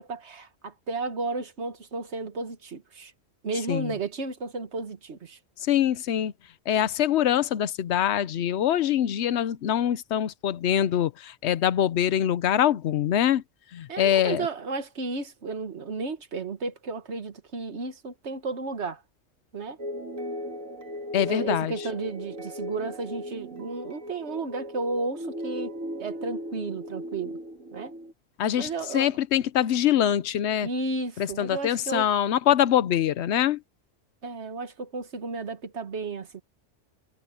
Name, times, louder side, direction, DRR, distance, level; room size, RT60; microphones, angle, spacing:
voice 1, 0.0-3.1 3.4-5.4 13.9-19.0 19.5-19.8 21.3-25.7 26.0-27.4 27.7-27.9 28.6-29.1 30.6-32.1 34.2-36.4, right 3 dB, 60° right, 1.7 m, -33 dB
voice 2, 5.7-6.3 6.7-13.4 13.7-14.5 21.1-21.7 28.4-30.7 31.2-33.6, left 10 dB, 65° left, 0.9 m, -24 dB
sound 1, 19.8-28.1, equal, 90° right, 2.3 m, -37 dB
omnidirectional pair, 1.3 m